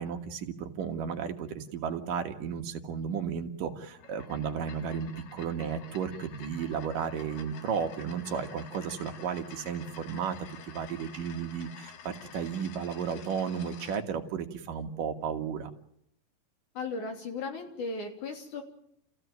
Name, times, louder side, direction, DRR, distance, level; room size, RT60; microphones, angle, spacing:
voice 1, 0.0-10.4 10.7-15.7, right 7 dB, 70° right, 5 dB, 3.1 m, -34 dB
sound 1, 3.9-14.0, left 7 dB, 85° left, 3.4 m, -49 dB
voice 2, 16.8-18.6, left 3 dB, 60° left, 4 dB, 4.5 m, -36 dB
30.0 x 15.0 x 9.3 m, 0.74 s
omnidirectional pair, 4.0 m